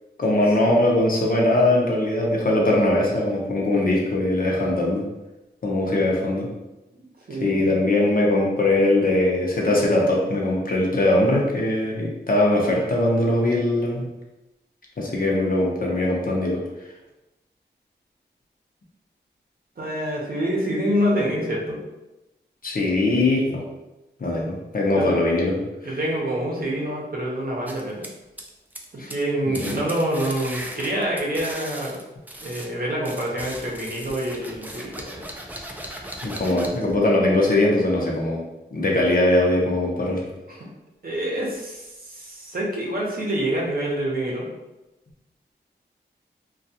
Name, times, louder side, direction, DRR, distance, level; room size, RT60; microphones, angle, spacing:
voice 1, 0.2-5.0 5.6-6.5 7.4-14.1 15.0-16.6 22.6-23.6 24.2-26.0 29.0-29.1 29.4-29.6 36.2-38.4 38.7-40.3, left 1 dB, 50° left, -2 dB, 0.7 m, -21 dB
voice 2, 7.3-7.7 19.8-21.8 24.9-25.1 25.8-28.0 28.9-32.0 32.4-35.3 40.5-40.7 41.0-44.5, right 1 dB, 50° right, -3 dB, 0.7 m, -26 dB
sound 1, 27.7-28.9 29.1-29.3 29.5-32.7 33.1-37.0, right 1 dB, 10° right, 0.4 m, -38 dB
2.3 x 2.3 x 2.7 m, 1.0 s
cardioid pair, 60°, 19 cm